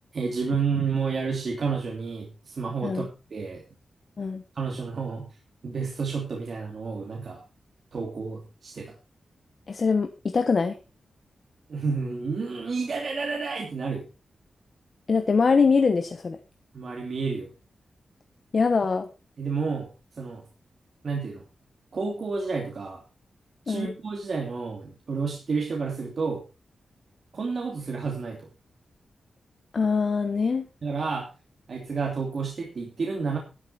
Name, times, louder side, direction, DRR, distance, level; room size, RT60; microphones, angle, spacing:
voice 1, 0.1-3.6 4.5-5.3 5.6-7.4 7.9-8.9 11.7-14.1 16.7-17.5 19.4-20.4 21.0-21.4 21.9-23.0 23.7-26.4 27.3-28.5 30.8-31.3 31.7-33.4, right 5 dB, 50° right, 0 dB, 2.7 m, -30 dB
voice 2, 9.7-10.8 15.1-16.4 18.5-19.1 23.7-23.9 29.7-30.7, left 5 dB, 45° left, 7 dB, 1.2 m, -23 dB
12.0 x 12.0 x 4.3 m, 0.30 s
wide cardioid pair, 155°, 0 cm